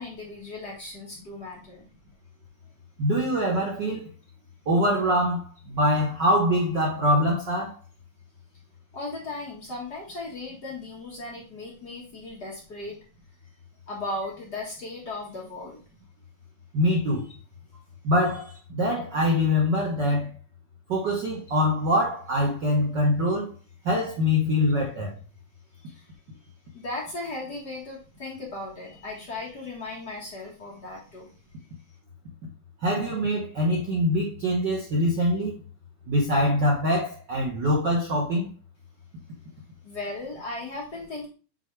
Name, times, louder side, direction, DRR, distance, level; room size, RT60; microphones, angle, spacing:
voice 1, 0.0-1.9 8.9-13.0 13.9-15.8 25.7-26.1 26.7-31.3 39.8-41.3, left 2 dB, 40° left, 1.7 m, -37 dB
voice 2, 3.0-4.1 4.7-7.8 16.7-17.3 18.0-20.3 20.9-23.5 23.8-25.1 32.8-35.5 36.1-38.5, left 1 dB, 80° right, 0.9 m, -24 dB
8.1 x 4.2 x 3.3 m
omnidirectional pair, 3.7 m